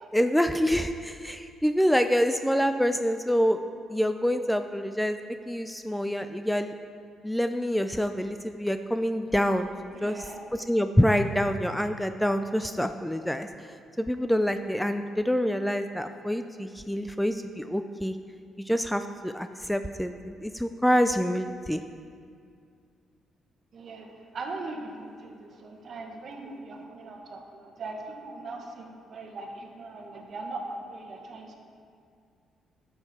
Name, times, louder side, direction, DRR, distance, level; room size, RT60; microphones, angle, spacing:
voice 1, 0.1-3.6 3.9-5.2 5.5-6.7 7.2-10.2 10.5-13.7 14.0-18.2 18.6-21.8, equal, 5° left, 8 dB, 0.4 m, -26 dB
voice 2, 9.9-10.4 23.7-31.6, right 3 dB, 55° right, 2 dB, 1.3 m, -40 dB
11.0 x 7.0 x 4.3 m, 2.3 s
cardioid pair, 90°, 0 cm